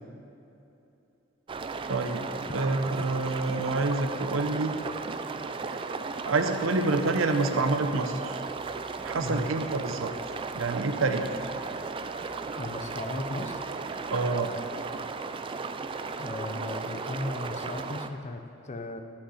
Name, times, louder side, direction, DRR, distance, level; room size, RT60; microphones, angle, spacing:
sound 1, 1.5-18.1, right 4 dB, 25° right, 0.3 m, -35 dB
voice 1, 1.9-4.7 6.3-8.4 9.0-10.1 10.5-11.3 14.1-14.5, right 3 dB, 80° right, 6 dB, 0.7 m, -27 dB
voice 2, 9.2-9.5 12.6-13.6 16.2-19.0, left 2 dB, 35° left, 6 dB, 0.6 m, -36 dB
11.5 x 5.6 x 5.7 m, 2.9 s
head